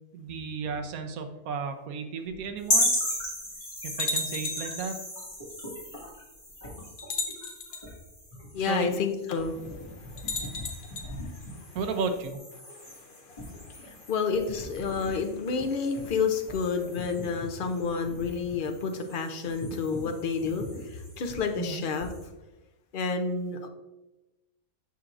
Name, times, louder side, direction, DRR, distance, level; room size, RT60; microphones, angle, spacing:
voice 1, 0.1-2.9 3.8-4.9 8.7-8.9 11.7-12.4 21.6-21.8, right 5 dB, 80° right, 6 dB, 1.1 m, -33 dB
sound 1, 2.3-2.4 3.2-3.3 4.0-4.8 6.0-6.1 7.0-7.9 10.2-11.1, left 3 dB, 85° left, 1.3 m, -34 dB
sound 2, 2.6-22.3, left 1 dB, 20° left, 2.0 m, -36 dB
voice 2, 8.5-9.6 10.0-11.7 12.7-22.1 22.9-23.7, left 5 dB, 60° left, 5 dB, 0.5 m, -30 dB
6.8 x 5.9 x 2.5 m, 1.0 s
omnidirectional pair, 1.5 m